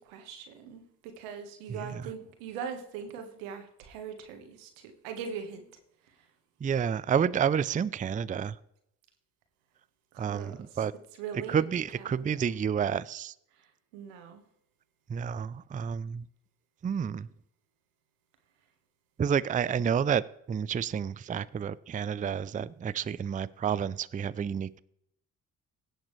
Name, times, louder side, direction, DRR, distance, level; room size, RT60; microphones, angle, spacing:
voice 1, 0.0-5.6 10.1-10.6 11.2-11.6 12.0-12.4 13.9-14.4, right 6 dB, 90° right, 6 dB, 1.5 m, -41 dB
voice 2, 1.7-2.0 6.6-8.6 10.2-10.9 11.5-13.3 15.1-16.2 16.8-17.3 19.2-24.8, right 7 dB, 20° right, 17 dB, 0.4 m, -30 dB
17.0 x 6.6 x 3.2 m, 0.75 s
hypercardioid pair, 50°, 39 cm